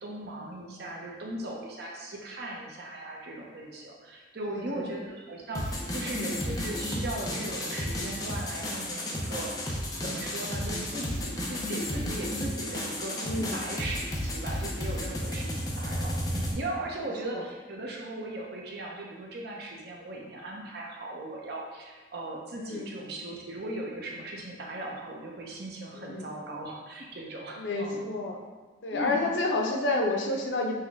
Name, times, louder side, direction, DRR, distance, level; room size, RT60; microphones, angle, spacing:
voice 1, 0.0-28.0 28.9-29.2, right 1 dB, 60° right, -1 dB, 0.8 m, -38 dB
voice 2, 4.4-4.9 13.2-13.6 17.3-17.4 22.6-22.9 25.9-26.3 27.6-28.4 28.8-30.8, left 2 dB, 85° left, 1 dB, 0.6 m, -30 dB
sound 1, 5.5-16.5, left 1 dB, 20° left, 0.6 m, -33 dB
5.7 x 2.2 x 3.5 m, 1.4 s
head